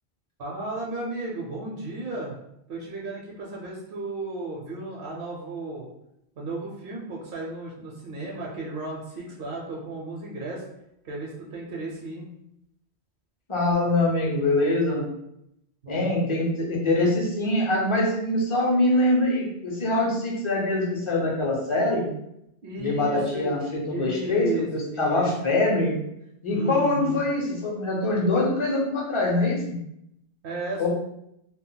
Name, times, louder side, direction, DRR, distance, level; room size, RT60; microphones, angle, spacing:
voice 1, 0.4-2.3 2.7-5.9 6.3-10.6 11.0-12.3 15.8-16.3 22.6-23.6 23.9-25.3 26.5-27.2 30.4-30.9, right 2 dB, 65° right, -3 dB, 0.7 m, -34 dB
voice 2, 13.5-15.1 15.9-22.1 22.8-25.9 26.4-29.8 30.8-30.9, left 2 dB, 35° left, -2 dB, 0.5 m, -24 dB
2.2 x 2.0 x 3.7 m, 0.80 s
omnidirectional pair, 1.1 m